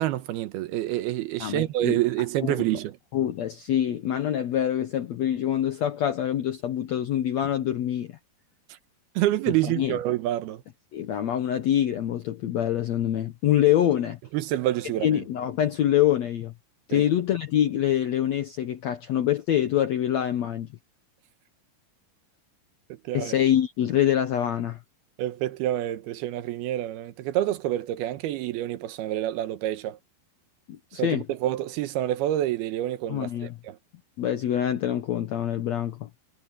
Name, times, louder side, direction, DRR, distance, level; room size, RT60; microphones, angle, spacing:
voice 1, 0.0-2.9 9.2-10.6 14.3-15.2 16.9-17.0 23.1-23.4 25.2-30.0 30.9-33.8, right 14 dB, 85° right, 3.0 m, -27 dB
voice 2, 1.4-2.0 2.4-2.6 3.1-8.2 9.8-10.0 10.9-14.2 15.0-16.5 16.9-20.7 23.1-24.8 30.7-31.2 33.1-33.5 34.2-36.1, left 11 dB, 75° left, 1.6 m, -25 dB
omnidirectional pair, 4.4 m